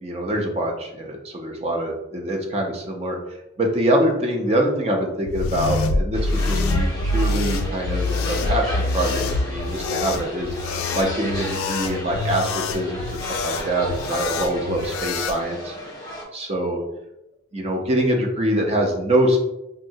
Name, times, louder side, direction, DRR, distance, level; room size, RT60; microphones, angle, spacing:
voice 1, 0.0-3.2 3.6-10.5 10.9-13.0 13.4-15.8 16.3-16.8 17.5-19.4, right 1 dB, 30° right, 1 dB, 0.4 m, -24 dB
sound 1, 5.2-15.4, left 2 dB, 90° left, 0.3 m, -25 dB
sound 2, 6.1-16.2, left 1 dB, 20° left, 0.6 m, -34 dB
3.6 x 2.0 x 2.6 m, 0.89 s
head